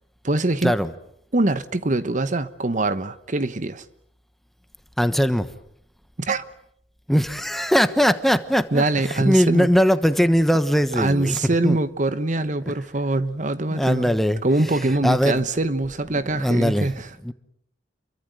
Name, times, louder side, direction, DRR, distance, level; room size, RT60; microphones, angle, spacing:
voice 1, 0.2-0.7 1.3-3.8 6.2-6.4 8.7-9.7 11.0-14.1 14.4-17.1, right 2 dB, 45° right, 1.1 m, -23 dB
voice 2, 5.0-5.5 7.1-8.8 9.1-11.8 13.7-14.4 15.0-15.4 16.4-16.9 17.2-17.3, equal, ahead, 1.2 m, -20 dB
28.5 x 23.5 x 8.1 m
head